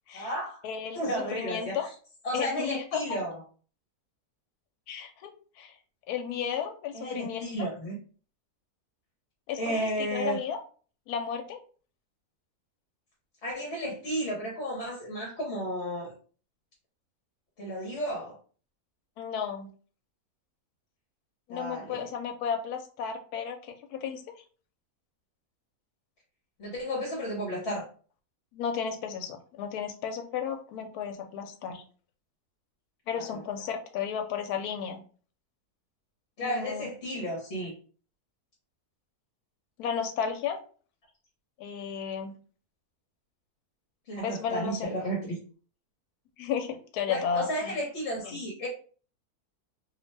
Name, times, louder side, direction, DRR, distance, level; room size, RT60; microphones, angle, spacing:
voice 1, 0.1-0.6 0.9-1.8 2.2-3.3 6.9-8.0 9.6-10.4 13.4-16.1 17.6-18.4 21.5-22.1 26.6-27.8 33.1-33.4 36.4-37.7 44.1-45.3 47.1-48.7, equal, 55° left, -3 dB, 1.0 m, -33 dB
voice 2, 0.6-1.9 2.3-3.0 4.9-5.7 6.1-7.5 9.5-10.6 11.1-11.6 19.2-19.7 21.5-24.2 28.5-31.8 33.1-35.0 36.4-36.9 39.8-40.6 41.6-42.4 44.2-44.9 46.4-47.7 48.2-48.4, left 7 dB, 80° left, 5 dB, 1.1 m, -33 dB
2.7 x 2.1 x 3.2 m, 0.41 s
omnidirectional pair, 1.6 m